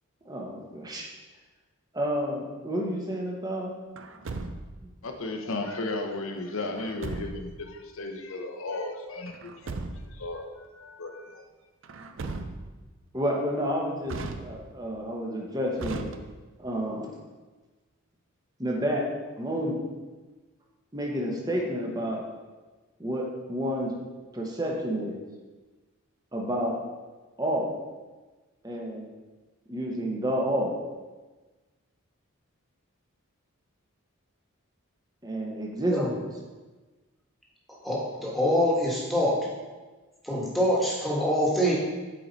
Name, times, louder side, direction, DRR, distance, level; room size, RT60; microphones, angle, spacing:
voice 1, 0.2-1.1 1.9-3.7 13.1-16.1 16.6-17.1 18.6-19.1 19.4-19.8 20.9-22.2 23.0-23.9 24.3-25.2 26.3-26.8 27.4-27.8 28.6-29.1 29.7-30.8 35.2-36.2, equal, 15° right, -1 dB, 1.0 m, -30 dB
Truck, 4.0-4.9 6.8-7.6 9.3-10.2 11.8-12.9 14.1-14.9 15.8-16.7, right 3 dB, 60° right, 0.5 m, -37 dB
voice 2, 5.0-11.4, left 2 dB, 65° left, 4 dB, 0.9 m, -35 dB
voice 3, 37.8-39.5 40.2-41.7, equal, ahead, -5 dB, 1.5 m, -25 dB
8.4 x 4.7 x 4.1 m, 1.3 s
head